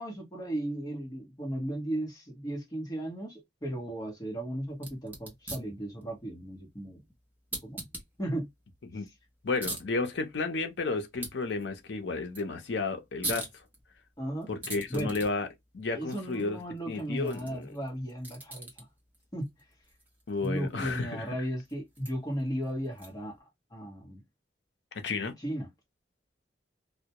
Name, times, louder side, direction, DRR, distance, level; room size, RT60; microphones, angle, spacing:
voice 1, 0.0-7.0 7.6-7.9 8.2-8.5 14.2-14.5 14.9-15.1 15.9-18.9 19.3-19.5 20.4-23.4 23.7-24.2 25.4-25.7, right 1 dB, 20° left, 0.9 m, -35 dB
sound 1, 4.7-23.4, right 1 dB, 10° right, 0.7 m, -45 dB
voice 2, 9.4-13.5 14.5-15.5 15.7-16.6 16.9-17.7 20.3-21.3 24.9-25.3, left 3 dB, 75° left, 0.6 m, -32 dB
2.2 x 2.1 x 2.8 m
head